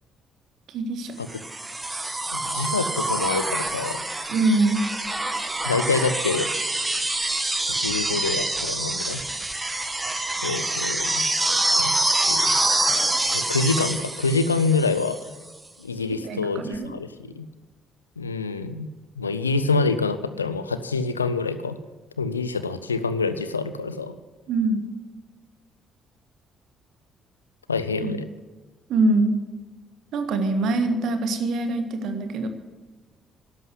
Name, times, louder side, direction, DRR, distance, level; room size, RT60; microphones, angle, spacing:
voice 1, 0.7-1.1 4.3-4.8 16.2-16.9 24.5-24.8 28.0-28.1 28.9-29.3 30.1-32.5, right 2 dB, 60° right, 7 dB, 1.6 m, -23 dB
sound 1, 1.3-15.3 16.7-16.8, right 2 dB, 20° right, 1.9 m, -26 dB
voice 2, 2.3-4.0 5.6-6.5 7.8-9.2 10.4-11.2 11.7-11.9 12.3-12.6 13.3-15.2 15.8-17.5 18.2-21.8 22.2-24.1 27.7-28.3, left 4 dB, 85° left, 13 dB, 0.6 m, -26 dB
13.0 x 11.0 x 7.7 m, 1.3 s
figure-of-eight pair, 45°, 0 cm